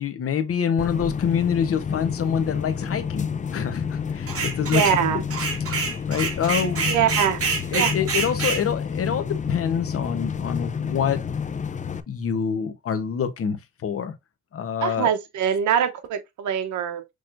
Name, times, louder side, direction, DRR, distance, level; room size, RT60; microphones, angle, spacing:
voice 1, 0.0-4.8 5.1-5.2 6.1-6.9 7.7-11.2 12.1-14.1 14.5-15.1, left 7 dB, 50° left, 1.0 m, -26 dB
sound 1, 0.8-12.0, left 6 dB, 25° left, 0.5 m, -29 dB
sound 2, 4.3-5.0 5.3-8.6, right 5 dB, 50° right, 1.8 m, -26 dB
voice 2, 4.7-5.2 6.9-7.4 7.7-7.9 14.8-17.0, right 9 dB, 75° right, 0.9 m, -23 dB
6.2 x 3.1 x 2.6 m
cardioid pair, 90°, 30 cm